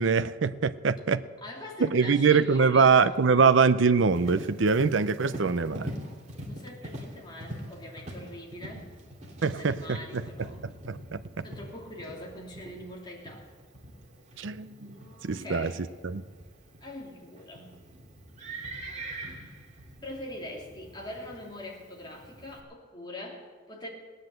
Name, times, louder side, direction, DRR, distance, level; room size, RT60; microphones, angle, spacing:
voice 1, 0.0-1.2 1.8-5.9 9.4-10.2 10.6-11.4 14.4-14.9 15.2-15.7 16.0-16.2, right 5 dB, 70° right, 11 dB, 0.6 m, -23 dB
voice 2, 1.4-3.1 6.4-8.9 9.4-10.6 11.4-13.5 15.4-15.8 16.8-17.8 20.0-23.9, left 1 dB, 25° left, -2 dB, 3.0 m, -43 dB
Livestock farm animals working animals, 4.1-22.6, right 1 dB, 40° right, 2.6 m, -44 dB
18.5 x 9.9 x 7.7 m, 1.5 s
head